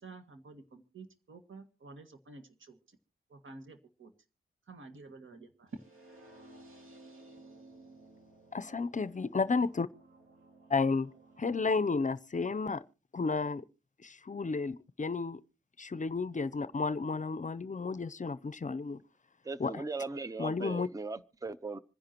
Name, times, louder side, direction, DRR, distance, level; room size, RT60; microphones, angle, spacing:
voice 1, 0.0-3.0 3.3-4.1 4.7-5.7, right 3 dB, 75° right, 1.9 m, -51 dB
sound 1, 5.7-11.7, right 2 dB, 90° right, 2.9 m, -56 dB
voice 2, 8.5-9.9 10.7-11.1 11.4-12.8 13.1-13.6 14.0-15.4 15.8-19.0 19.6-19.7 20.4-20.9, left 4 dB, 40° left, 0.6 m, -32 dB
voice 3, 19.4-21.8, right 3 dB, 15° right, 0.6 m, -38 dB
26.5 x 10.5 x 2.9 m
cardioid pair, 60°, 21 cm